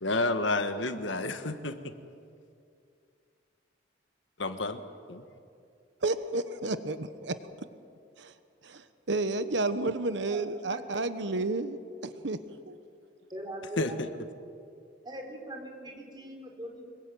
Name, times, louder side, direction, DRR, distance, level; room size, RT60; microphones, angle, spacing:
voice 1, 0.0-1.8 4.4-4.8 5.1-5.2 13.8-14.1, left 2 dB, 75° left, 8 dB, 1.6 m, -30 dB
voice 2, 6.0-7.3 8.2-8.3 8.6-12.4 12.7-12.8, right 2 dB, 65° right, 11 dB, 1.1 m, -31 dB
voice 3, 10.3-11.0 11.3-11.4 13.3-14.2 15.0-16.8, right 1 dB, 25° right, 2 dB, 4.2 m, -42 dB
25.5 x 22.5 x 9.1 m, 2.4 s
head